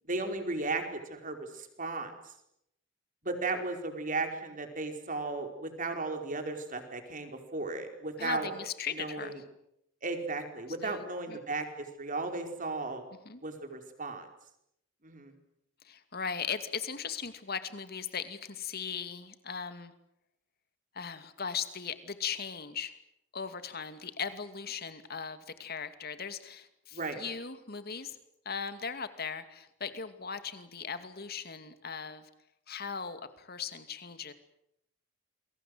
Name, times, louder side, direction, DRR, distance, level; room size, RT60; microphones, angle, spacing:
voice 1, 0.1-2.3 3.2-8.5 9.0-9.3 10.0-13.0 13.4-14.3 15.0-15.3 26.9-27.2, right 3 dB, 45° right, 6 dB, 4.9 m, -35 dB
voice 2, 8.2-9.4 10.8-11.4 13.2-13.4 15.8-19.9 20.9-23.0 23.3-28.2 28.4-32.3 32.7-34.3, left 6 dB, 55° left, 11 dB, 2.5 m, -38 dB
28.5 x 22.5 x 8.0 m, 0.77 s
head